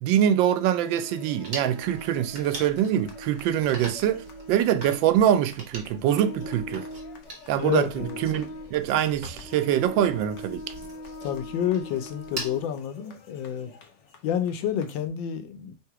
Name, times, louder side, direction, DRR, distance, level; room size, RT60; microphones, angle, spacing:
voice 1, 0.0-6.9 7.5-10.6, right 10 dB, 85° right, 1.3 m, -24 dB
sound 1, 0.8-15.0, left 1 dB, 55° left, 0.8 m, -42 dB
sound 2, 1.4-12.6, right 2 dB, 35° right, 1.3 m, -42 dB
voice 2, 7.6-8.2 11.2-13.7 14.2-15.7, left 9 dB, 90° left, 1.4 m, -29 dB
3.5 x 2.9 x 4.6 m
omnidirectional pair, 2.0 m